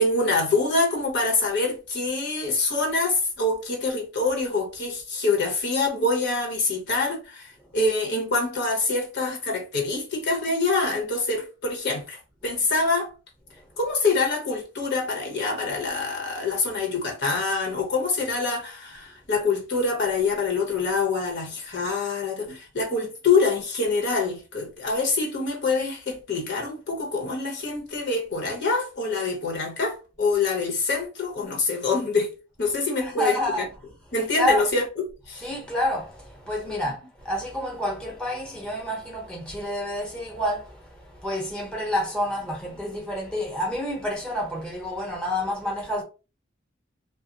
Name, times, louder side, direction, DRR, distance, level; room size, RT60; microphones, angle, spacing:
voice 1, 0.0-13.1 13.8-32.3 32.6-33.6 34.1-35.5 36.7-36.8, left 3 dB, 55° left, 1.0 m, -25 dB
voice 2, 33.0-33.7 34.4-34.7 35.4-46.0, left 1 dB, 5° left, 0.9 m, -29 dB
2.4 x 2.1 x 3.9 m
head